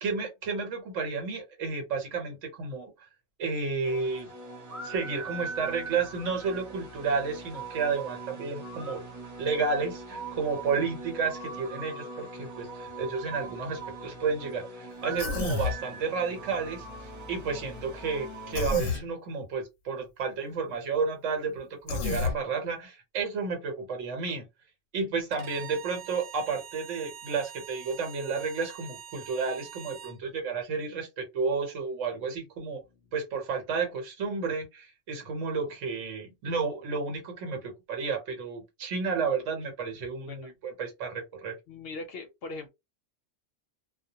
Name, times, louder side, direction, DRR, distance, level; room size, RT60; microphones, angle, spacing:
voice 1, 0.0-3.1 3.4-4.3 4.8-9.0 9.4-24.4 24.9-32.8 33.1-41.6, right 5 dB, 85° right, 1.1 m, -31 dB
sound 1, 3.8-18.7, right 3 dB, 15° right, 0.7 m, -41 dB
Human voice, 15.2-15.8 18.5-19.0 21.9-22.4, left 5 dB, 90° left, 0.9 m, -29 dB
Bowed string instrument, 25.3-30.2, right 10 dB, 70° right, 0.8 m, -45 dB
voice 2, 41.7-42.7, left 3 dB, 65° left, 0.7 m, -40 dB
2.2 x 2.1 x 2.8 m
omnidirectional pair, 1.3 m